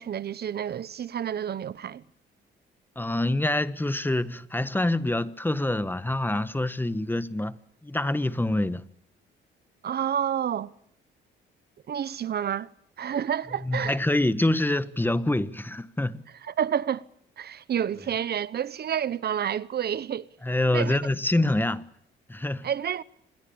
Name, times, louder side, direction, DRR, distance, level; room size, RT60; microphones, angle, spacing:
voice 1, 0.0-2.0 9.8-10.7 11.9-12.7 13.0-14.0 16.4-17.0 17.4-20.3 20.7-21.0 22.6-23.0, right 9 dB, 55° right, 0.9 m, -29 dB
voice 2, 3.0-7.5 7.8-8.8 13.6-16.2 20.4-21.8 22.3-22.7, left 1 dB, 10° left, 1.3 m, -26 dB
27.0 x 21.5 x 8.7 m
cardioid pair, 90°, 20 cm